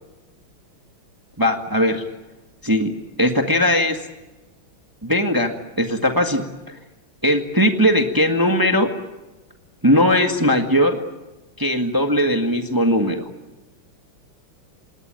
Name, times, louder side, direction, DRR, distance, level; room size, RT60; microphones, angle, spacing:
voice 1, 1.4-2.0 2.6-2.9 3.2-4.0 5.0-6.4 7.2-8.9 9.8-11.0 11.6-13.3, equal, 10° right, 5 dB, 1.5 m, -19 dB
28.0 x 19.5 x 8.9 m, 1.1 s
omnidirectional pair, 2.3 m